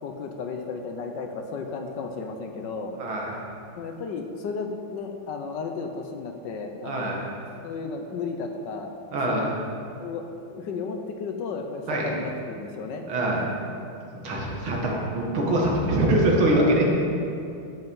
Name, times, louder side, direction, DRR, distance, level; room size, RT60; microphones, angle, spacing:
voice 1, 0.0-3.0 3.8-7.3 7.6-8.9 9.3-9.5 10.0-13.0, left 4 dB, 65° left, 4 dB, 1.3 m, -34 dB
voice 2, 3.0-3.4 6.8-7.2 9.1-9.5 11.9-12.1 13.1-13.4 14.1-16.9, right 1 dB, 80° right, -2 dB, 2.6 m, -23 dB
11.0 x 7.9 x 5.4 m, 2.6 s
omnidirectional pair, 2.3 m